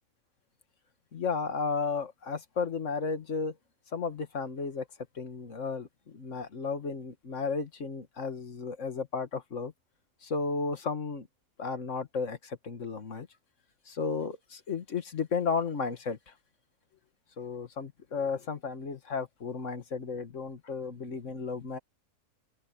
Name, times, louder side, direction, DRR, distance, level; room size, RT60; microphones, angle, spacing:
voice 1, 1.1-3.5 3.9-4.9 5.2-9.7 10.2-11.3 11.6-13.3 13.9-16.3 17.4-21.8, left 5 dB, 55° left, 2.0 m, -33 dB
open air
omnidirectional pair, 1.6 m